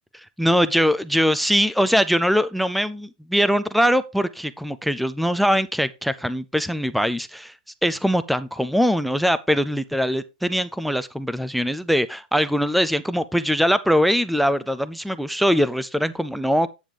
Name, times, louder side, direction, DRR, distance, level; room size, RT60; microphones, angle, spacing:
voice 1, 0.4-7.5 7.8-16.7, equal, ahead, 0.4 m, -22 dB
9.2 x 7.1 x 3.3 m
hypercardioid pair, 110°, 5 cm